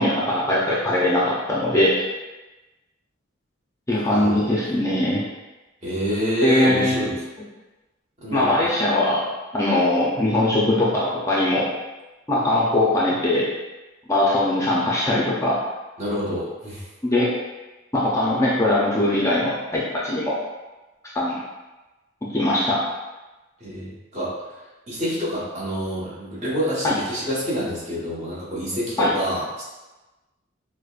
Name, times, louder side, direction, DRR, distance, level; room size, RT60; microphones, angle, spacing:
voice 1, 0.0-2.0 3.9-5.2 6.4-7.2 8.3-11.7 12.3-13.5 14.1-15.6 17.0-17.3 17.9-20.4 21.1-21.3 22.3-22.8 26.8-27.0 29.0-29.1, left 1 dB, 15° left, -6 dB, 0.5 m, -21 dB
voice 2, 3.9-4.5 5.8-7.2 8.2-8.5 16.0-16.9 23.6-24.3 24.9-29.6, equal, 35° right, -8 dB, 1.1 m, -27 dB
4.8 x 2.1 x 2.4 m, 1.1 s
head